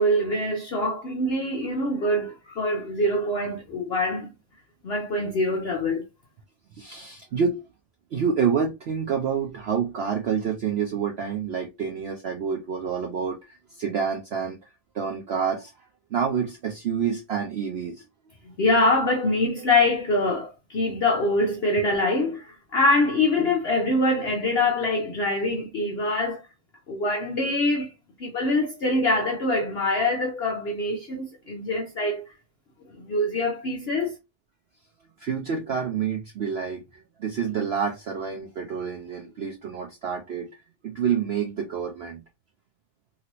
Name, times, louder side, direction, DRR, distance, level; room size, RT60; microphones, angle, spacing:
voice 1, 0.0-4.3 4.8-6.0 18.6-26.4 26.9-27.9 28.2-32.3 32.9-34.1, left 2 dB, 65° left, 0.6 m, -24 dB
voice 2, 6.7-7.6 8.1-14.6 14.9-15.7 16.1-18.0 19.5-19.6 35.2-40.5 40.8-42.2, right 7 dB, 70° right, 0.6 m, -28 dB
2.9 x 2.9 x 2.9 m
omnidirectional pair, 1.6 m